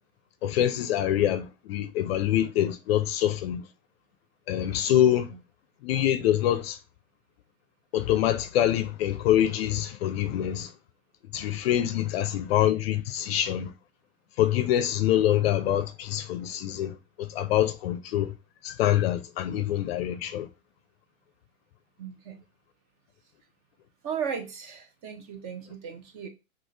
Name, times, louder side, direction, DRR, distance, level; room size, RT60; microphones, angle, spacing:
voice 1, 0.4-3.6 4.5-5.3 5.8-6.8 7.9-10.7 11.3-13.7 14.4-18.3 18.6-20.5, left 11 dB, 45° left, 0.6 m, -25 dB
voice 2, 22.0-22.4 24.0-26.3, right 7 dB, 30° right, 0.9 m, -36 dB
6.3 x 2.6 x 3.2 m
hypercardioid pair, 130°, 42 cm